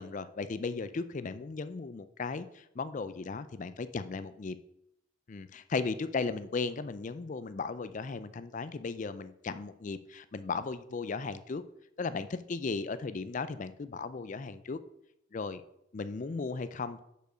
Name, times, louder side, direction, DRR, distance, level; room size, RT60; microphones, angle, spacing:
voice 1, 0.0-4.6 5.3-11.6 12.0-14.8 15.3-15.6 15.9-17.0, left 4 dB, 40° left, 13 dB, 0.4 m, -36 dB
6.8 x 5.1 x 6.2 m, 0.79 s
head